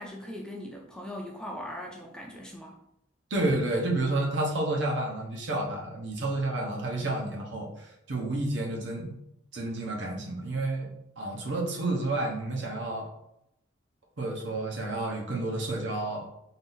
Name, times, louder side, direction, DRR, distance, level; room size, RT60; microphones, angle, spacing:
voice 1, 0.0-2.8, left 1 dB, 5° left, -1 dB, 0.4 m, -40 dB
voice 2, 3.3-9.1 9.5-10.9 11.2-13.1 14.2-16.3, right 2 dB, 70° right, -1 dB, 1.0 m, -30 dB
3.8 x 2.7 x 3.9 m, 0.79 s
head